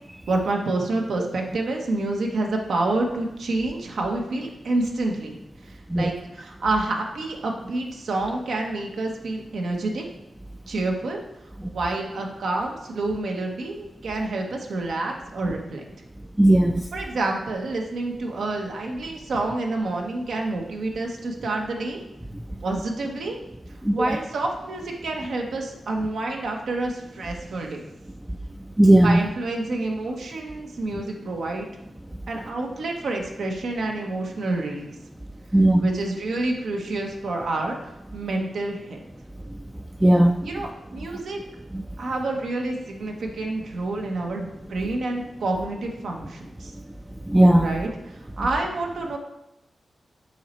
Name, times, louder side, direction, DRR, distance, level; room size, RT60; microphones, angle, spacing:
voice 1, 0.3-5.4 5.7-10.0 10.7-11.2 11.7-15.8 16.9-22.0 22.6-23.4 23.9-27.8 29.0-31.7 32.3-34.9 35.8-37.8 38.1-39.0 40.4-41.4 42.0-46.7 47.6-47.9 48.4-49.2, right 2 dB, 80° right, 1.0 m, -28 dB
voice 2, 16.4-16.8 23.9-24.0 28.8-29.2 35.5-35.8 40.0-40.3 47.3-47.7, right 1 dB, 10° right, 0.3 m, -15 dB
6.4 x 4.0 x 4.3 m
cardioid pair, 65°, 0 cm